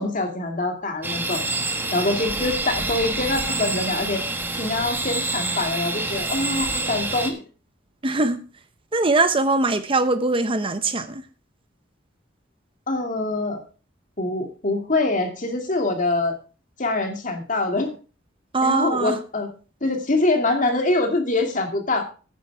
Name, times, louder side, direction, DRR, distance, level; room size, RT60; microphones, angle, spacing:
voice 1, 0.0-1.5 1.9-4.2 4.5-7.4 12.9-13.6 14.2-16.4 16.8-17.9 18.6-19.5 19.8-22.0, left 2 dB, 45° left, 2.3 m, -24 dB
sound 1, 1.0-7.3, right 2 dB, 10° right, 1.5 m, -27 dB
voice 2, 8.0-8.4 8.9-11.2 18.5-19.2, right 3 dB, 30° right, 0.8 m, -21 dB
10.5 x 9.3 x 4.7 m
head